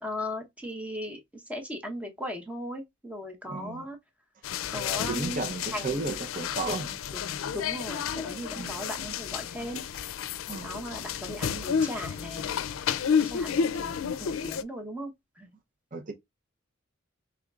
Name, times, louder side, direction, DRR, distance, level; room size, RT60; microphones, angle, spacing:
voice 1, 0.0-4.0 4.7-5.4 5.7-6.0 6.7-9.8 10.6-12.5 13.1-15.6, equal, 5° right, 0.9 m, -38 dB
voice 2, 3.5-3.9 5.1-7.0 8.5-8.8 10.5-10.7 15.9-16.1, right 3 dB, 40° right, 0.8 m, -34 dB
sound 1, 4.4-14.6, left 7 dB, 85° left, 0.4 m, -31 dB
5.0 x 3.5 x 2.4 m
head